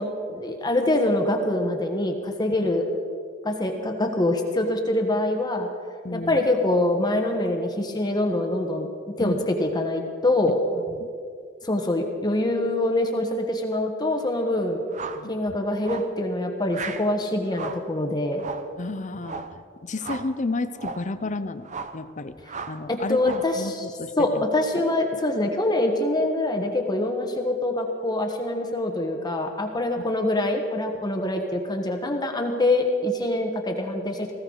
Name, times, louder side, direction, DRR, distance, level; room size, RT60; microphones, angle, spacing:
voice 1, 0.0-2.9 3.4-5.7 6.1-8.9 9.2-10.6 11.6-14.8 15.3-18.5 22.9-23.6 24.2-34.3, left 1 dB, 20° left, 3 dB, 1.3 m, -24 dB
voice 2, 6.0-6.4 9.2-9.5 10.7-11.1 15.1-15.3 18.8-22.4 22.7-24.4, left 2 dB, 40° left, 12 dB, 0.7 m, -32 dB
sound 1, 14.9-15.3 15.8-16.2 16.7-17.1 17.5-17.9 18.4-18.7 19.2-19.6 20.0-20.3 20.7-21.1 21.6-22.0 22.5-22.8 23.2-23.6, right 5 dB, 40° right, 0.7 m, -36 dB
19.5 x 15.5 x 4.0 m, 2.1 s
head